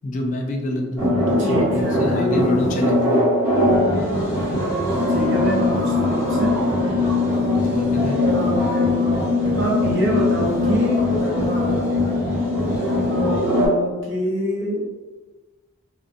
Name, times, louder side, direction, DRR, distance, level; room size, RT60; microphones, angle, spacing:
voice 1, 0.0-3.2 7.7-8.2, left 1 dB, 35° left, 1 dB, 0.3 m, -26 dB
sound 1, 1.0-13.7, left 2 dB, 15° right, 1.2 m, -21 dB
voice 2, 1.1-2.6 5.1-6.6 8.3-11.1 13.1-14.9, equal, 60° right, -2 dB, 0.6 m, -26 dB
2.5 x 2.1 x 2.5 m, 1.2 s
head